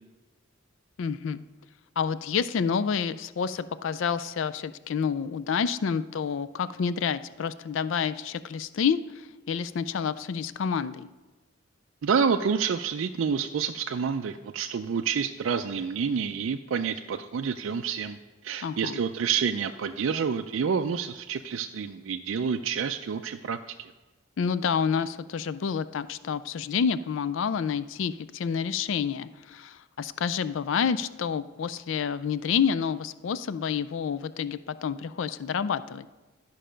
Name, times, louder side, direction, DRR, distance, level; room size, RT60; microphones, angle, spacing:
voice 1, 1.0-1.4 2.0-11.1 18.6-19.0 24.4-36.1, left 6 dB, 65° left, 14 dB, 0.4 m, -29 dB
voice 2, 12.0-18.2 18.4-23.9, right 6 dB, 65° right, 5 dB, 0.4 m, -28 dB
12.0 x 5.5 x 5.1 m, 1.2 s
head